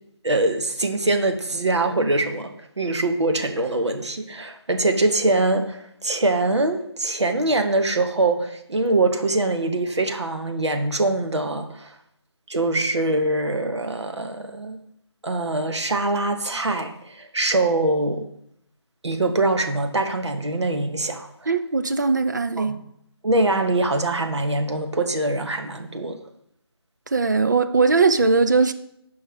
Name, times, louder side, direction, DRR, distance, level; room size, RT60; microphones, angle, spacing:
voice 1, 0.2-11.9 12.5-14.8 15.2-18.3 19.0-21.5 22.6-22.8 23.2-26.2, right 2 dB, 75° right, 5 dB, 1.1 m, -23 dB
voice 2, 21.5-22.8 27.1-28.7, right 4 dB, 40° right, 9 dB, 0.5 m, -19 dB
7.9 x 5.4 x 3.5 m, 0.75 s
figure-of-eight pair, 165°, 14 cm